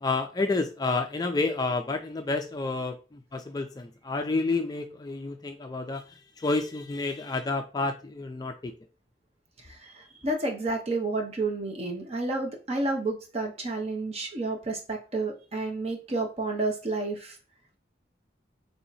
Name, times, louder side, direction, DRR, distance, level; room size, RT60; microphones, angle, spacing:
voice 1, 0.0-6.0 6.4-8.7, left 3 dB, 20° left, 5 dB, 0.3 m, -29 dB
voice 2, 9.8-17.4, right 2 dB, 35° right, 3 dB, 0.8 m, -30 dB
3.4 x 2.8 x 4.0 m, 0.34 s
head